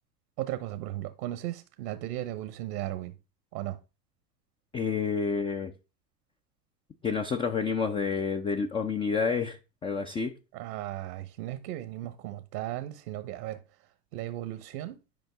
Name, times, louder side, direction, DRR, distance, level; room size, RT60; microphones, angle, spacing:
voice 1, 0.4-3.1 3.5-3.8 10.5-15.0, right 14 dB, 65° right, 1.1 m, -36 dB
voice 2, 4.7-5.7 7.0-9.6 9.8-10.3, left 5 dB, 10° left, 0.4 m, -29 dB
11.0 x 5.2 x 3.4 m
hypercardioid pair, 90°, 50 cm